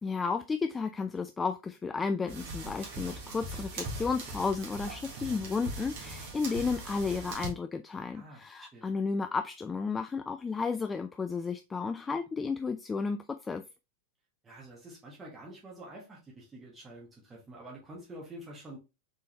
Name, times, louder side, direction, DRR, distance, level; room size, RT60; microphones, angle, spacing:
voice 1, 0.0-13.6, left 4 dB, 15° left, 0.3 m, -33 dB
sound 1, 2.3-7.5, right 2 dB, 45° right, 1.5 m, -40 dB
voice 2, 8.1-8.9 14.4-18.8, right 1 dB, 15° right, 1.5 m, -48 dB
4.1 x 3.6 x 3.1 m
figure-of-eight pair, 90°, 0 cm